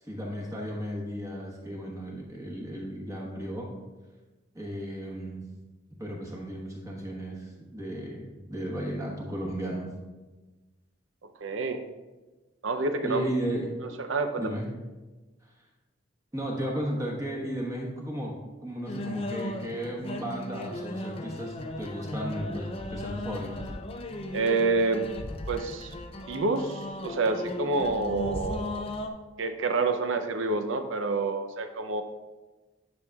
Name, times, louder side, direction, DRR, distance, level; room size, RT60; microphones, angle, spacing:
voice 1, 0.0-3.7 4.5-5.4 6.0-9.9 13.0-13.7 14.4-14.7 16.3-18.3 18.6-23.7, equal, 15° right, -2 dB, 1.2 m, -34 dB
voice 2, 11.2-11.8 12.6-13.3 13.8-14.6 24.3-25.1 25.5-25.9 26.3-28.9 29.4-32.0, right 3 dB, 70° right, 8 dB, 0.6 m, -28 dB
sound 1, 18.9-29.1, left 1 dB, 30° left, 0.4 m, -36 dB
10.5 x 6.2 x 2.3 m, 1.2 s
head